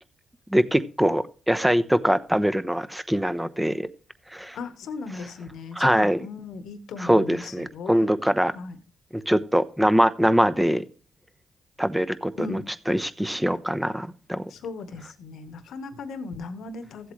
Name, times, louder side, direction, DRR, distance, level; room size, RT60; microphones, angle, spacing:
voice 1, 0.5-3.9 4.3-4.6 5.8-6.2 7.0-8.5 9.3-10.8 11.8-12.6 12.9-14.4, equal, 5° right, 0.9 m, -23 dB
voice 2, 4.5-7.9 8.5-8.8 12.4-12.7 14.5-17.1, left 4 dB, 80° left, 1.2 m, -37 dB
15.0 x 7.9 x 3.2 m
cardioid pair, 80°, 0 cm